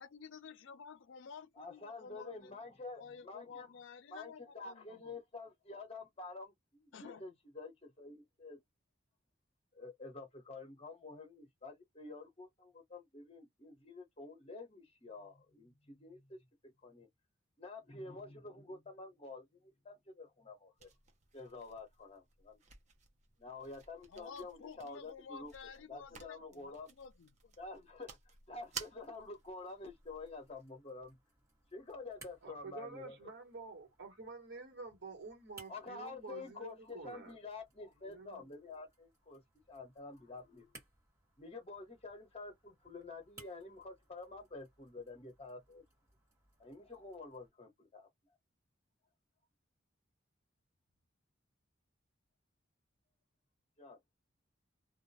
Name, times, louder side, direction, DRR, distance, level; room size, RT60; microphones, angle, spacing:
voice 1, 0.0-2.6 3.0-5.2 6.9-7.3 24.1-27.5, left 6 dB, 70° left, 0.4 m, -52 dB
voice 2, 1.6-3.7 4.1-8.6 9.7-16.5 16.8-17.1 17.6-20.9 21.3-22.6 23.4-25.5 25.9-26.9 27.6-28.2 28.5-31.2 31.7-33.1 35.7-39.4 39.7-40.7 41.4-45.8 46.6-48.1 53.8-54.0, left 3 dB, 30° left, 0.8 m, -49 dB
sound 1, 20.8-30.7, right 6 dB, 35° right, 0.6 m, -54 dB
sound 2, 28.6-47.5, right 2 dB, 15° right, 1.2 m, -64 dB
voice 3, 32.4-37.4 38.0-38.5, right 4 dB, 60° right, 1.2 m, -49 dB
2.2 x 2.1 x 2.6 m
head